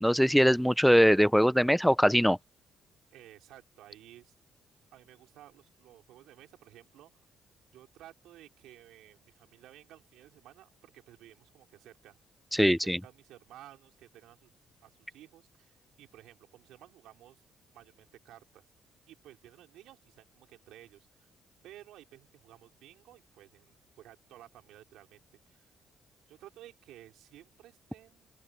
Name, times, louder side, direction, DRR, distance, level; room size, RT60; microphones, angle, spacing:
voice 1, 0.0-2.4 12.5-13.0, equal, ahead, 0.6 m, -22 dB
voice 2, 3.1-4.3 4.9-7.1 7.7-12.2 12.6-14.5 14.8-17.4 17.7-18.6 19.1-21.3 21.6-25.7 26.3-28.3, right 13 dB, 90° right, 4.6 m, -55 dB
open air
cardioid pair, 90°, 0 cm